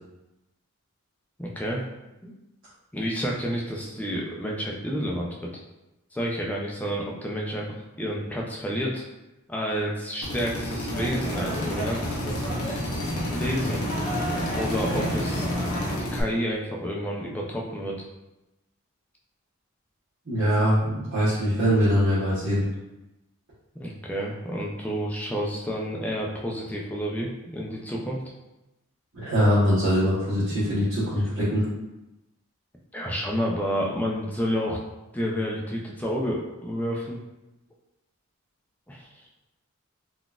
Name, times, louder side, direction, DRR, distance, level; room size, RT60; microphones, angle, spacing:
voice 1, 1.4-1.8 2.2-2.3 2.9-5.5 6.1-9.0 9.5-12.5 13.3-13.8 14.5-15.5 16.0-18.1 23.8-28.2 32.9-34.8 35.1-37.2 38.9-39.2, equal, 5° left, -2 dB, 0.4 m, -30 dB
Drill, 10.2-16.2, left 1 dB, 90° left, 0.7 m, -32 dB
sound 1, 10.9-16.0, equal, 55° left, 0.9 m, -30 dB
voice 2, 20.3-22.6 29.1-31.6, equal, 65° right, -13 dB, 1.1 m, -22 dB
3.8 x 2.4 x 2.3 m, 0.97 s
head